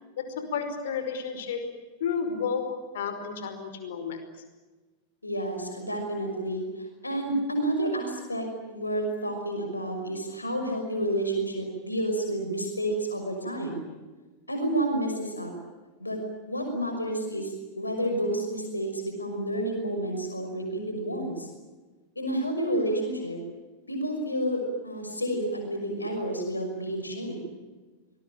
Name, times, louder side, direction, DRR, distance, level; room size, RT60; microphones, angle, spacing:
voice 1, 0.2-1.7 2.0-4.2, left 6 dB, 60° left, 8 dB, 5.2 m, -31 dB
voice 2, 5.2-13.8 14.5-15.5 16.0-16.2 16.5-21.5 22.2-23.4 23.9-27.4, right 1 dB, 85° left, 4 dB, 5.9 m, -30 dB
26.5 x 21.5 x 8.9 m, 1.3 s
figure-of-eight pair, 90°, 0 cm